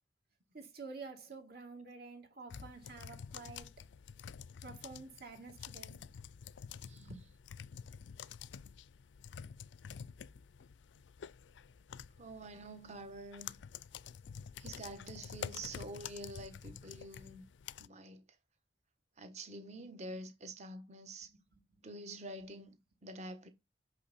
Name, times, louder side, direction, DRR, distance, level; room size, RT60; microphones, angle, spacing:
voice 1, 0.5-3.7 4.6-6.0 6.6-7.2 21.3-21.8, right 4 dB, 55° right, 2.6 m, -50 dB
sound 1, 2.5-17.9, left 7 dB, 75° left, 0.4 m, -49 dB
voice 2, 12.2-13.6 14.6-17.4 17.8-18.2 19.2-21.3 21.8-23.5, right 2 dB, 40° right, 1.2 m, -47 dB
6.1 x 5.7 x 4.1 m
head